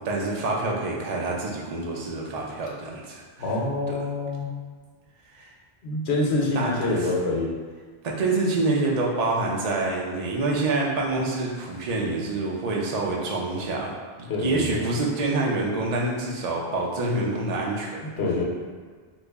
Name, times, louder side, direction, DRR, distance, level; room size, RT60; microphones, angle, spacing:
voice 1, 0.0-3.5 3.9-4.0 5.3-5.5 6.6-7.1 8.2-13.9 14.2-18.1, right 2 dB, 50° right, -2 dB, 0.6 m, -27 dB
voice 2, 3.4-4.5 5.8-7.5 14.3-14.9 18.2-18.4, left 2 dB, 85° left, -2 dB, 1.0 m, -26 dB
3.0 x 2.5 x 3.4 m, 1.5 s
omnidirectional pair, 1.1 m